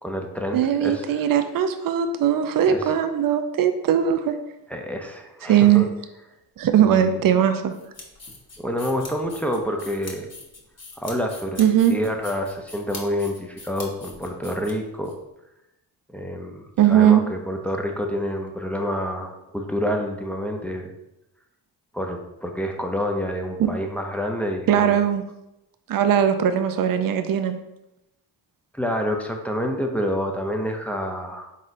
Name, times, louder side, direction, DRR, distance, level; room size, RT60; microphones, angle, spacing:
voice 1, 0.0-1.3 2.7-2.9 4.7-5.9 6.8-7.2 8.6-10.3 11.0-11.6 11.9-15.1 16.1-20.9 21.9-25.0 28.7-31.5, equal, 5° left, 2 dB, 0.6 m, -28 dB
voice 2, 0.5-4.3 5.5-5.8 6.6-7.7 11.6-11.9 16.8-17.2 23.6-23.7 24.7-25.2 25.9-27.6, right 9 dB, 55° right, 9 dB, 0.5 m, -19 dB
sound 1, 7.7-15.1, left 3 dB, 35° left, 1.2 m, -42 dB
4.1 x 3.6 x 2.6 m, 0.89 s
supercardioid pair, 50°, 43 cm